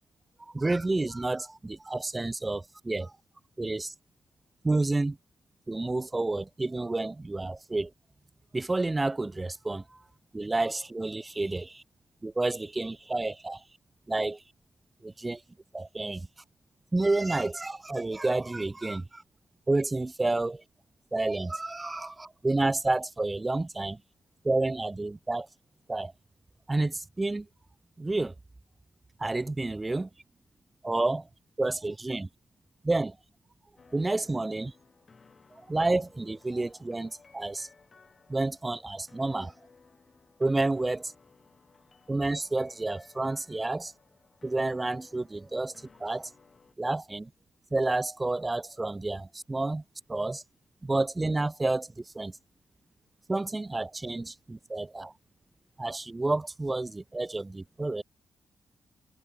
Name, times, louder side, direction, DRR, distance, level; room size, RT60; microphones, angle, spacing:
voice 1, 0.4-3.1 3.6-3.9 4.6-5.2 5.7-7.9 8.5-10.0 10.3-11.8 12.2-13.6 14.1-14.4 15.0-15.4 15.7-16.3 16.9-19.2 19.7-20.6 21.1-24.0 24.4-25.5 25.9-26.1 26.7-27.5 28.0-28.3 29.2-30.1 30.8-31.3 31.6-32.3 32.8-33.2 33.9-34.7 35.5-37.7 38.3-39.5 40.4-41.1 42.1-43.9 44.4-46.3 46.8-47.3 47.7-49.8 50.1-50.4 50.8-52.4 53.3-55.1 55.8-58.0, right 2 dB, 15° right, 0.6 m, -30 dB
sound 1, 33.8-46.7, left 4 dB, 35° left, 3.9 m, -59 dB
cardioid pair, 110°, 0 cm